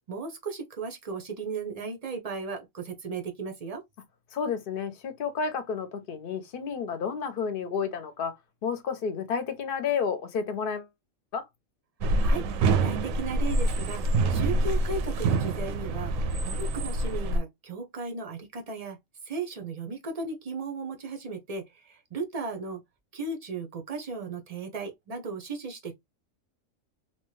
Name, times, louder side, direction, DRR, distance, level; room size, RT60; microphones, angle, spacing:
voice 1, 0.1-3.8 12.2-14.0 14.3-16.1 16.4-19.0 19.2-22.8 23.1-25.9, right 4 dB, 45° right, 0.5 m, -36 dB
voice 2, 4.3-8.3 8.6-10.9 11.3-11.4, left 6 dB, 50° left, 0.7 m, -31 dB
sound 1, 12.0-17.4, right 2 dB, 80° right, 0.9 m, -26 dB
2.9 x 2.2 x 3.1 m
omnidirectional pair, 1.4 m